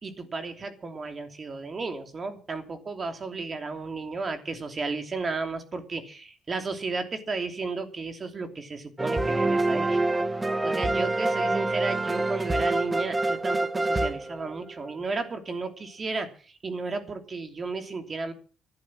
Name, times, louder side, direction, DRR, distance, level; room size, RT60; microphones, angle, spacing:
voice 1, 0.0-10.0 10.6-18.3, right 3 dB, 40° right, 7 dB, 3.0 m, -34 dB
sound 1, 9.0-14.9, right 2 dB, 15° right, 1.3 m, -26 dB
12.0 x 12.0 x 7.3 m, 0.38 s
cardioid pair, 90°, 0 cm